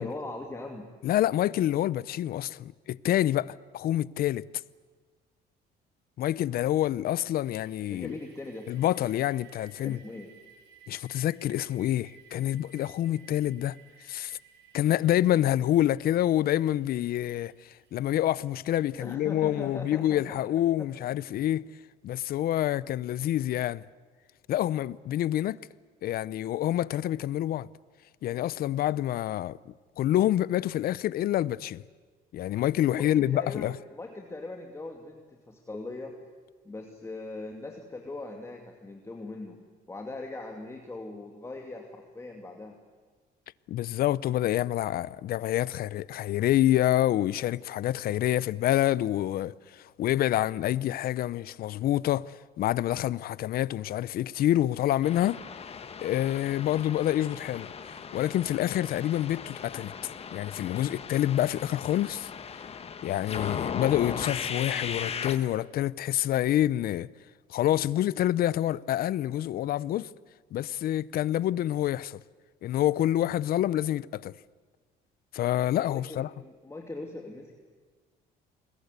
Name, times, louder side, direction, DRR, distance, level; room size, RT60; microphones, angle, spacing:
voice 1, 0.0-0.9 7.9-8.7 9.8-10.3 19.0-20.4 20.8-20.9 32.9-36.2 36.6-39.6 39.9-42.8 75.8-77.5, left 2 dB, 15° left, 2.5 m, -40 dB
voice 2, 1.0-4.5 6.2-8.2 8.7-10.0 10.9-13.8 14.0-14.4 14.7-21.7 22.0-23.9 24.5-25.6 26.0-27.7 28.2-29.6 30.0-31.8 32.3-33.8 43.7-55.4 56.0-59.9 60.3-62.3 63.0-67.1 67.5-70.1 70.5-72.2 72.6-74.3 75.3-76.3, left 13 dB, 60° left, 0.7 m, -27 dB
sound 1, 7.5-20.0, right 6 dB, 85° right, 5.6 m, -58 dB
sound 2, 55.0-65.4, left 6 dB, 35° left, 1.6 m, -37 dB
29.0 x 21.0 x 8.3 m
cardioid pair, 110°, 17 cm